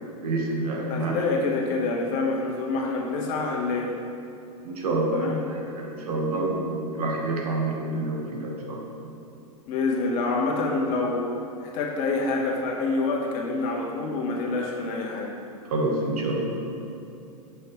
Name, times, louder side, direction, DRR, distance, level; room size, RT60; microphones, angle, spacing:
voice 1, 0.2-1.1 4.6-8.9 15.7-16.7, right 2 dB, 70° right, -1 dB, 1.3 m, -28 dB
voice 2, 0.9-4.0 5.1-5.4 9.7-11.3 11.6-15.3, left 3 dB, 45° left, -1 dB, 1.2 m, -27 dB
7.0 x 6.3 x 3.1 m, 2.7 s
hypercardioid pair, 105°, 20 cm